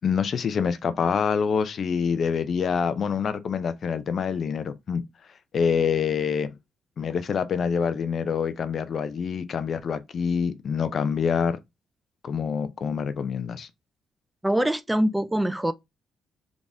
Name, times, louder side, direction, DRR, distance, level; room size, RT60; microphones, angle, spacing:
voice 1, 0.0-5.0 5.5-6.5 7.0-11.6 12.2-13.7, left 6 dB, 50° left, 0.6 m, -26 dB
voice 2, 14.4-15.7, right 1 dB, 10° right, 0.4 m, -23 dB
3.9 x 3.6 x 3.5 m
cardioid pair, 115°, 0 cm